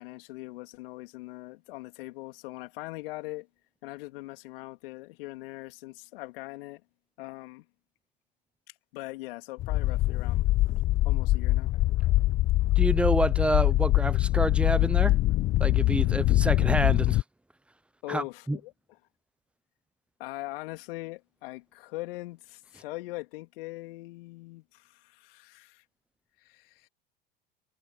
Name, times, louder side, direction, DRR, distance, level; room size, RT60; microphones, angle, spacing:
voice 1, 0.0-3.5 3.8-6.8 7.2-7.6 8.9-10.5 11.0-11.7 18.0-18.7 20.2-25.8 26.4-26.9, left 20 dB, 65° left, 3.2 m, -41 dB
sound 1, 9.6-17.2, left 17 dB, 30° left, 0.4 m, -24 dB
voice 2, 12.8-15.1 15.6-17.2 18.1-18.6, right 2 dB, 5° right, 0.8 m, -28 dB
hypercardioid pair, 80°, 30 cm